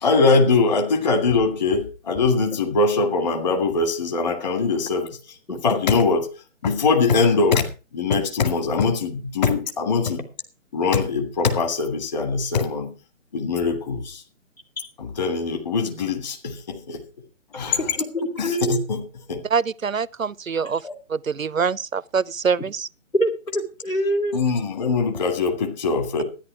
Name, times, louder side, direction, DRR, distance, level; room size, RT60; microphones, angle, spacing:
voice 1, 0.0-5.1 5.5-6.3 6.6-7.7 7.9-10.2 10.7-12.9 13.3-14.2 15.0-17.0 17.5-17.8 18.4-19.0 19.3-19.4 20.8-20.9 24.3-26.2, left 4 dB, 35° left, 2.2 m, -22 dB
voice 2, 17.8-18.8 23.2-24.4, right 1 dB, 90° left, 3.3 m, -25 dB
voice 3, 19.5-20.8 21.1-22.9, right 6 dB, 85° right, 0.7 m, -24 dB
13.0 x 10.5 x 4.8 m
figure-of-eight pair, 145°, 39 cm